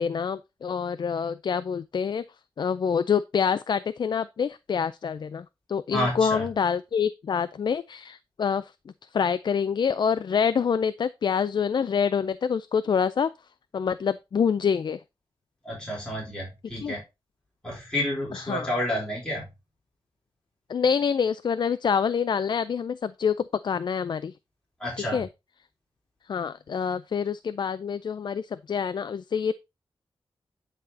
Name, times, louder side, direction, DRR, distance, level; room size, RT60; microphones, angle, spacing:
voice 1, 0.0-2.2 2.6-8.7 9.1-13.3 13.7-15.0 16.8-16.9 18.3-18.7 20.7-23.4 23.6-24.3 25.0-25.3 26.3-29.5, left 6 dB, 55° left, 0.4 m, -26 dB
voice 2, 5.9-6.5 15.6-17.0 17.6-19.4 24.8-25.2, left 1 dB, 10° left, 3.9 m, -30 dB
9.8 x 4.1 x 4.1 m
wide cardioid pair, 145°, 9 cm